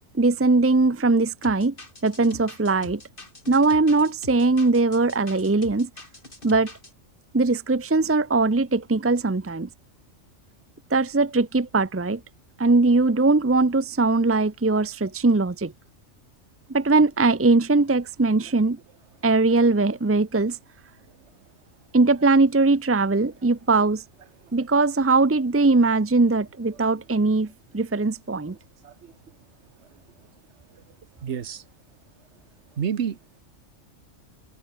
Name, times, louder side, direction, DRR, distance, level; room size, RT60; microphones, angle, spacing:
voice 1, 0.1-1.7 2.0-3.0 3.5-5.9 6.4-6.7 7.3-9.7 10.9-12.2 12.6-15.7 16.7-18.8 19.2-20.6 21.9-24.0 24.5-28.6, right 3 dB, 20° right, 0.3 m, -20 dB
sound 1, 1.4-6.9, left 2 dB, 40° left, 4.5 m, -44 dB
voice 2, 28.8-29.1 31.2-31.6 32.8-33.2, right 8 dB, 60° right, 1.4 m, -30 dB
omnidirectional pair, 1.3 m